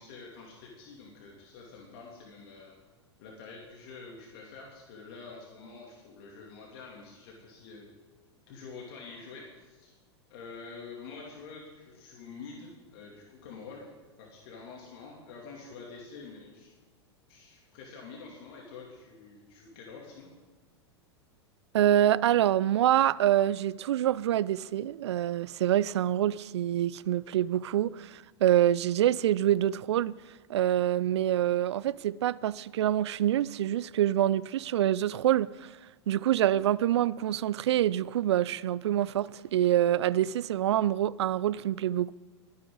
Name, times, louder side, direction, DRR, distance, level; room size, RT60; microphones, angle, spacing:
voice 1, 0.0-2.7 3.2-7.9 8.5-9.9 10.3-16.7 17.3-20.3, left 4 dB, 60° left, 2.9 m, -47 dB
voice 2, 21.7-30.2 30.5-35.7 36.1-42.1, right 12 dB, 75° right, 0.4 m, -26 dB
21.5 x 9.7 x 4.0 m
hypercardioid pair, 100°, 15 cm